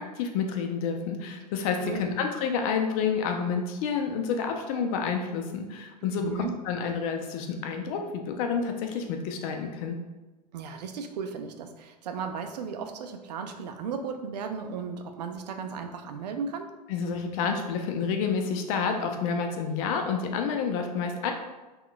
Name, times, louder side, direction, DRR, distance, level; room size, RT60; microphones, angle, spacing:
voice 1, 0.0-10.0 16.9-21.3, left 6 dB, 55° left, 4 dB, 0.5 m, -29 dB
voice 2, 6.2-6.5 10.5-16.7, right 6 dB, 75° right, 6 dB, 0.4 m, -35 dB
3.6 x 2.3 x 2.2 m, 1.1 s
hypercardioid pair, 95°, 21 cm